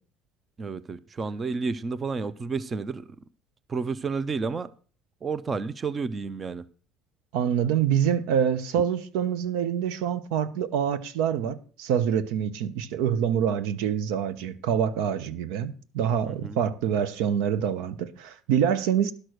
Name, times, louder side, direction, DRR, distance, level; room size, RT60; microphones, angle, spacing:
voice 1, 0.6-3.0 3.7-4.7 5.2-6.6 16.4-16.6, right 4 dB, 20° right, 0.4 m, -30 dB
voice 2, 7.3-19.1, right 8 dB, 80° right, 0.8 m, -26 dB
11.5 x 6.3 x 6.4 m
cardioid pair, 160°, 0 cm